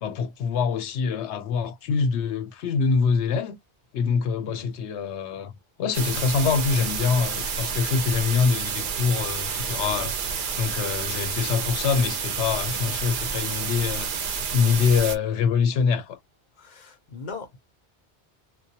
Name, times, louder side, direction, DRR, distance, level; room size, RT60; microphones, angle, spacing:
voice 1, 0.0-3.6 3.9-5.5 5.8-10.1 10.6-16.2, left 5 dB, 85° left, 0.9 m, -25 dB
sound 1, 5.9-15.2, right 6 dB, 60° right, 0.6 m, -29 dB
voice 2, 16.6-17.6, left 4 dB, 50° left, 0.7 m, -39 dB
2.3 x 2.2 x 2.7 m
omnidirectional pair, 1.1 m